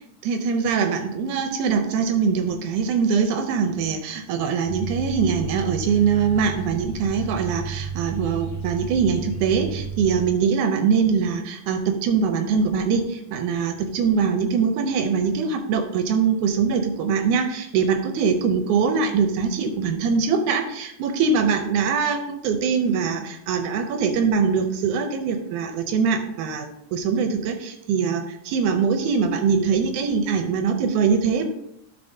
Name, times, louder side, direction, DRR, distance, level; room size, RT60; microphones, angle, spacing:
voice 1, 0.2-31.5, right 6 dB, 80° right, 6 dB, 2.1 m, -22 dB
sound 1, 4.6-10.3, right 5 dB, 70° left, 3.5 m, -32 dB
12.0 x 6.3 x 2.7 m, 0.78 s
omnidirectional pair, 3.6 m